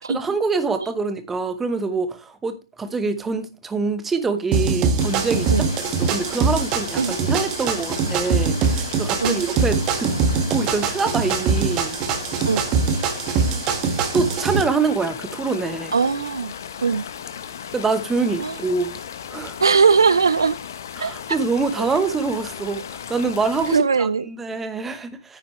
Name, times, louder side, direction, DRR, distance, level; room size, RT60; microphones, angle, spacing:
voice 1, 0.1-5.7 6.0-10.1 10.5-12.0 14.1-15.9 17.7-19.0 19.3-19.6 21.0-25.4, right 4 dB, 10° right, 1.0 m, -25 dB
sound 1, 4.5-14.6, right 5 dB, 25° right, 1.7 m, -22 dB
sound 2, 5.0-23.8, left 8 dB, 50° left, 1.1 m, -36 dB
voice 2, 15.9-16.5 16.8-17.0 18.4-18.6 19.6-20.6 21.0-21.4 21.8-21.9 23.7-24.3, right 5 dB, 70° right, 0.6 m, -19 dB
9.9 x 8.5 x 3.1 m
figure-of-eight pair, 130°, 2 cm